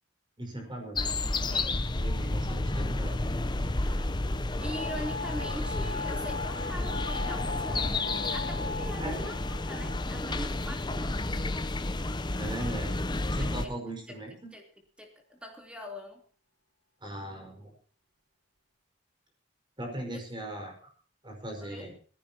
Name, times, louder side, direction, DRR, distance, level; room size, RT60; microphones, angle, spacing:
voice 1, 0.4-3.2 9.0-9.3 12.4-13.1 13.3-14.5 17.0-17.7 19.8-20.7 21.2-22.0, right 1 dB, 25° right, 2 dB, 5.3 m, -39 dB
sound 1, 1.0-13.7, left 2 dB, 25° left, 0.8 m, -31 dB
voice 2, 1.5-1.8 3.8-4.1 4.6-8.0 8.3-11.5 13.3-13.7 14.1-14.2 14.5-14.6 15.0-16.2 20.1-20.2 21.6-21.9, equal, 5° right, 1 dB, 3.6 m, -42 dB
sound 2, 4.6-11.5 12.4-13.0, left 4 dB, 70° right, 1.3 m, -40 dB
20.5 x 15.5 x 3.0 m, 0.43 s
head